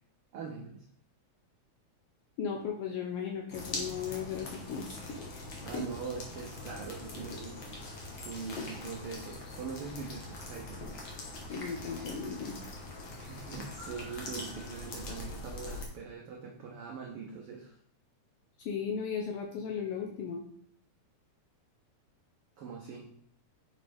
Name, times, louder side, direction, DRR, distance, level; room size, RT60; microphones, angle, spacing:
voice 1, 0.3-0.8 5.6-7.8 8.2-10.8 13.1-17.7 22.6-23.1, right 5 dB, 85° right, 0 dB, 1.2 m, -42 dB
voice 2, 2.4-5.0 5.3-5.4 5.7-5.8 11.5-12.6 18.6-20.4, left 6 dB, 80° left, 1 dB, 1.3 m, -36 dB
sound 1, 3.5-15.9, left 2 dB, 50° left, 1.5 m, -42 dB
6.5 x 5.1 x 3.4 m, 0.66 s
omnidirectional pair, 3.5 m